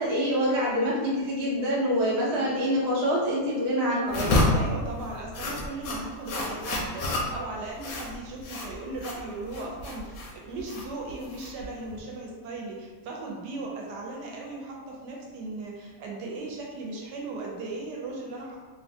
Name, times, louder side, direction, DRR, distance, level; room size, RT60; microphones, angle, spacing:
voice 1, 0.0-4.3, equal, 40° right, -7 dB, 0.5 m, -26 dB
sound 1, 4.1-12.0, left 2 dB, 70° left, 0.9 m, -29 dB
voice 2, 4.5-18.6, right 2 dB, 75° right, -1 dB, 1.2 m, -37 dB
3.0 x 2.1 x 2.7 m, 1.4 s
omnidirectional pair, 1.9 m